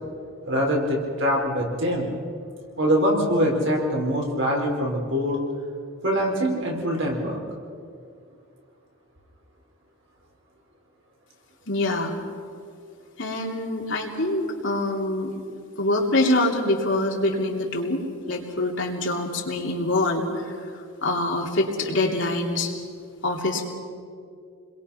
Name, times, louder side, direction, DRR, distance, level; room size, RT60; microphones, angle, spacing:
voice 1, 0.5-2.1 2.7-5.4 6.0-7.4, equal, 60° right, -1 dB, 5.0 m, -23 dB
voice 2, 11.7-12.2 13.2-15.3 15.8-20.5 21.0-22.7 23.2-23.7, left 2 dB, 60° left, 0 dB, 3.2 m, -25 dB
29.0 x 22.0 x 5.9 m, 2.4 s
head